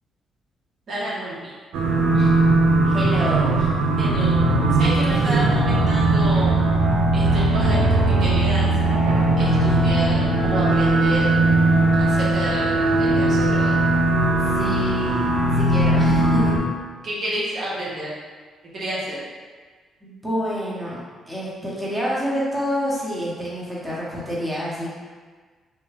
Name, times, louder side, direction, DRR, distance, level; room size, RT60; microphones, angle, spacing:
voice 1, 0.9-1.5 2.1-2.3 4.0-6.6 7.1-8.7 9.4-11.3 12.0-13.8 17.0-18.1 18.7-19.2, right 1 dB, 55° right, -6 dB, 0.7 m, -30 dB
sound 1, 1.7-16.6, right 2 dB, 80° right, 0.4 m, -19 dB
voice 2, 2.9-3.6 5.1-5.5 14.4-16.5 20.0-21.0 21.3-24.9, equal, 15° right, -6 dB, 0.9 m, -28 dB
3.4 x 2.1 x 3.3 m, 1.5 s
cardioid pair, 90°, 0 cm